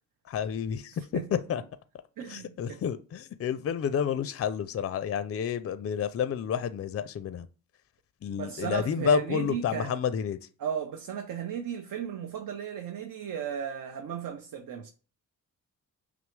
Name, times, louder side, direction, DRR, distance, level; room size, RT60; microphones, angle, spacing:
voice 1, 0.3-0.9 1.5-1.6 2.3-7.5 8.2-10.4, left 8 dB, 40° left, 0.4 m, -30 dB
voice 2, 0.9-1.3 2.2-2.8 8.3-10.0 10.6-14.9, right 9 dB, 65° right, 0.6 m, -35 dB
5.9 x 2.0 x 3.2 m
cardioid pair, 85°, 35 cm